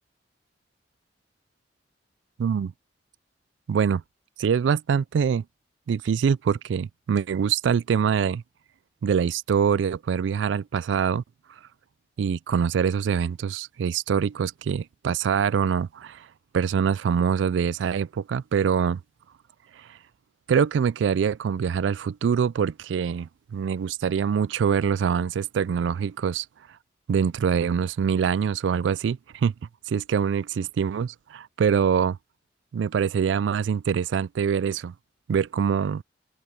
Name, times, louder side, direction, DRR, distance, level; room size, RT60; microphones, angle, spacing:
voice 1, 2.4-2.7 3.7-4.0 4.4-5.4 5.9-8.4 9.0-11.2 12.2-16.3 16.5-19.0 19.8-20.0 20.5-26.5 27.1-29.5 29.9-32.2 32.7-34.9 35.3-36.0, right 7 dB, 85° right, 0.3 m, -24 dB
open air
head